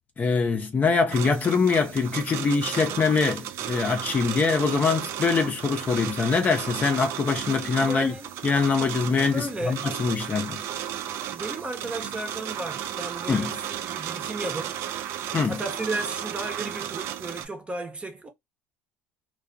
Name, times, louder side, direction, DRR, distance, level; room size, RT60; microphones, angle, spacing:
voice 1, 0.2-8.1 8.4-10.6 13.3-13.5 15.3-15.6, left 4 dB, 30° left, 0.7 m, -24 dB
sound 1, 1.1-17.5, right 10 dB, 60° right, 0.4 m, -34 dB
voice 2, 7.6-8.3 9.3-9.9 11.3-14.8 15.5-18.3, right 2 dB, 20° right, 0.9 m, -34 dB
2.3 x 2.3 x 2.5 m
hypercardioid pair, 80°, 5 cm